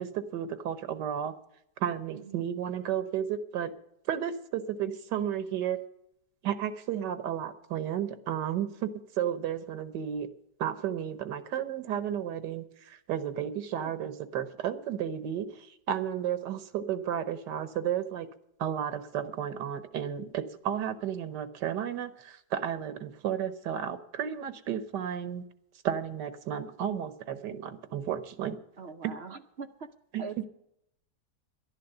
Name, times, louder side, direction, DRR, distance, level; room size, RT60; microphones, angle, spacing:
voice 1, 0.0-1.3 1.8-3.7 4.1-5.8 6.4-10.3 10.6-18.3 18.6-25.4 25.8-28.6 29.0-29.1 30.1-30.4, right 9 dB, 85° right, 12 dB, 1.6 m, -33 dB
voice 2, 2.1-2.4 13.7-14.0 28.8-29.9 30.2-30.5, right 4 dB, 55° right, 7 dB, 0.7 m, -42 dB
11.5 x 11.0 x 6.7 m, 0.78 s
omnidirectional pair, 1.8 m